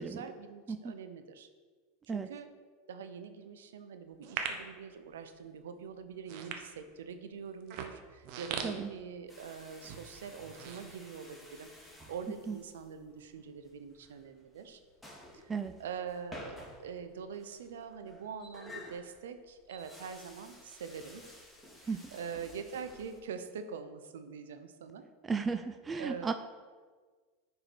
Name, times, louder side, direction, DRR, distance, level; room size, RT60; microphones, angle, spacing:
voice 1, 0.0-1.5 2.1-2.5 2.9-14.8 15.3-15.5 15.8-21.3 21.8-25.1 26.0-26.3, right 6 dB, 80° right, 9 dB, 0.8 m, -44 dB
sound 1, 4.2-4.7 5.4-5.6 6.1-7.1 7.6-9.5 9.8-10.0 10.4-11.5 11.9-12.0, right 7 dB, 60° right, 1.1 m, -40 dB
sound 2, 9.3-23.2, left 1 dB, 5° left, 2.3 m, -53 dB
voice 2, 25.2-26.3, right 5 dB, 20° right, 9 dB, 0.5 m, -34 dB
9.9 x 4.9 x 5.0 m, 1.5 s
hypercardioid pair, 95°, 0 cm